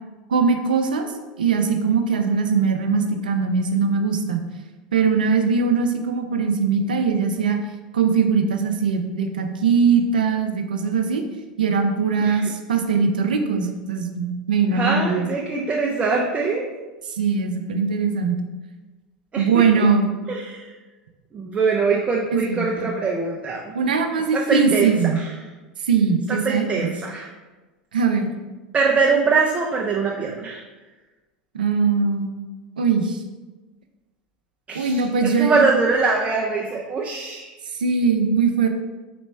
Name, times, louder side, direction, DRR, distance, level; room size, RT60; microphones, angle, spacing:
voice 1, 0.3-1.1 1.4-4.4 4.9-7.6 7.9-11.3 11.6-15.3 17.2-18.4 19.4-20.1 22.3-22.9 23.7-25.2 25.8-26.9 27.9-28.3 31.5-32.3 32.8-33.2 34.7-35.7 37.7-38.7, right 5 dB, 85° right, 6 dB, 0.5 m, -21 dB
voice 2, 14.7-16.6 19.3-19.9 20.3-20.7 21.3-23.8 24.3-25.3 26.3-27.3 28.7-30.6 34.7-37.5, right 4 dB, 25° right, -1 dB, 0.5 m, -23 dB
4.2 x 3.1 x 3.2 m, 1.2 s
hypercardioid pair, 85°, 5 cm